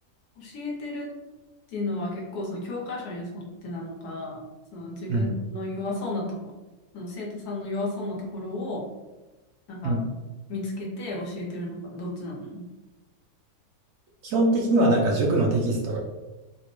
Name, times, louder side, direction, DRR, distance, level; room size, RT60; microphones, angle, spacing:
voice 1, 0.4-1.1 1.7-4.4 4.7-6.4 6.9-8.9 9.7-10.0 10.5-12.7, left 2 dB, 70° left, -3 dB, 1.3 m, -33 dB
voice 2, 14.2-16.0, right 2 dB, 70° right, -1 dB, 0.9 m, -22 dB
4.1 x 2.1 x 3.0 m, 1.1 s
omnidirectional pair, 1.7 m